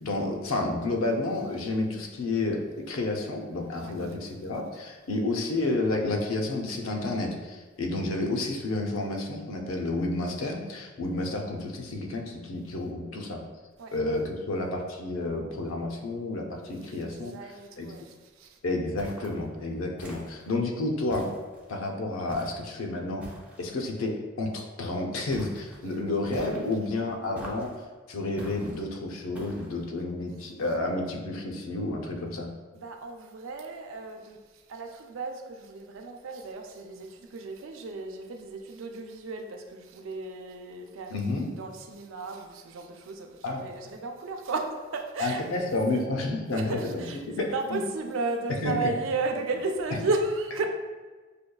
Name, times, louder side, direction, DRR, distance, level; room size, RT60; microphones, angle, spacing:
voice 1, 0.0-2.6 2.9-13.4 13.9-17.3 17.8-17.9 18.6-21.3 21.7-23.3 23.6-27.7 28.1-32.5 41.1-41.5 43.4-43.7 45.2-47.8 48.6-48.9, left 2 dB, 80° left, 2 dB, 0.5 m, -30 dB
voice 2, 3.8-4.1 13.8-14.0 16.7-18.6 25.8-26.0 30.6-30.8 32.7-34.4 34.7-46.0 46.5-50.7, right 3 dB, 70° right, 3 dB, 0.4 m, -34 dB
sound 1, 19.0-19.4 20.0-20.6 21.1-21.8 22.3-22.7 23.2-23.8 25.3-25.8 26.3-26.8 27.3-27.8 28.4-28.8 29.3-29.8, equal, 5° right, 0.5 m, -44 dB
5.0 x 2.3 x 2.2 m, 1.3 s
head